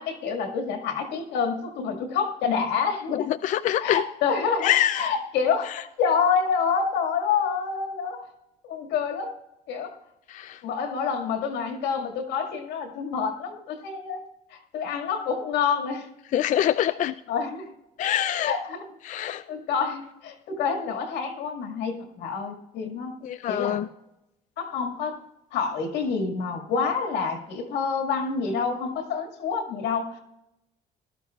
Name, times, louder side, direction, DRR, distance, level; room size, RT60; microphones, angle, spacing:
voice 1, 0.0-3.3 3.8-8.2 8.7-9.3 9.7-10.0 10.6-14.2 14.5-16.1 17.3-17.7 18.4-18.9 19.2-23.2 23.5-23.8 24.6-25.2 25.5-30.2, left 6 dB, 90° left, 3 dB, 2.0 m, -27 dB
voice 2, 3.1-4.0 4.6-5.1 10.3-10.6 16.3-17.1 18.0-18.5 19.1-19.4 23.2-23.9, left 11 dB, 50° left, 11 dB, 0.4 m, -24 dB
18.5 x 12.0 x 2.4 m, 0.90 s
cardioid pair, 110°, 17 cm